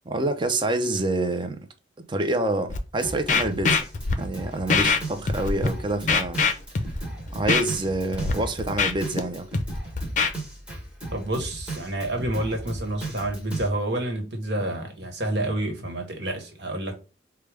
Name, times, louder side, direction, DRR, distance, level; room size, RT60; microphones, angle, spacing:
voice 1, 0.1-1.7 2.1-3.8 4.2-6.4 7.3-9.5, right 2 dB, 25° right, 0.5 m, -27 dB
Scratching (performance technique), 2.7-2.8 3.3-4.1 4.7-5.0 5.3-5.7 6.1-7.0 7.5-7.6 8.1-8.3 8.6-9.2 9.5-10.3, left 4 dB, 45° left, 0.5 m, -22 dB
Drum kit, 3.0-13.7, right 1 dB, 5° right, 1.2 m, -36 dB
voice 2, 11.1-16.9, right 1 dB, 70° right, 1.2 m, -29 dB
4.9 x 2.2 x 3.3 m
head